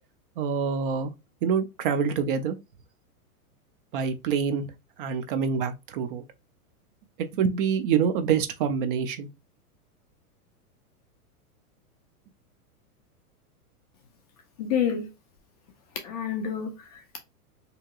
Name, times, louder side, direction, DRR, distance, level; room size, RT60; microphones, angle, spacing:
voice 1, 0.4-1.1 1.4-2.6 3.9-4.7 5.0-6.2 7.3-9.3, right 6 dB, 40° right, 0.4 m, -26 dB
voice 2, 14.6-15.1 16.0-17.2, left 8 dB, 30° left, 0.3 m, -29 dB
3.6 x 2.8 x 2.3 m
hypercardioid pair, 135°, 45 cm